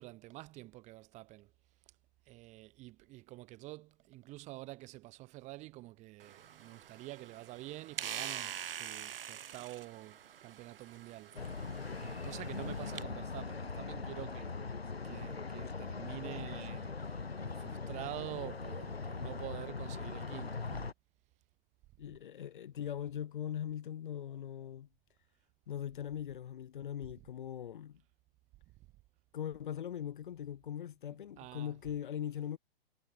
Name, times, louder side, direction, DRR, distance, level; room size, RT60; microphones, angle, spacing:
voice 1, 0.0-1.5 2.3-14.6 15.0-20.9 31.4-31.8, right 19 dB, 25° right, 1.4 m, -48 dB
sound 1, 6.2-13.0, right 9 dB, 65° right, 0.5 m, -45 dB
sound 2, 11.4-20.9, left 4 dB, 75° left, 2.0 m, -41 dB
voice 2, 22.0-24.9 25.7-28.0 29.3-32.6, left 10 dB, 55° left, 0.9 m, -40 dB
figure-of-eight pair, 115°, 30 cm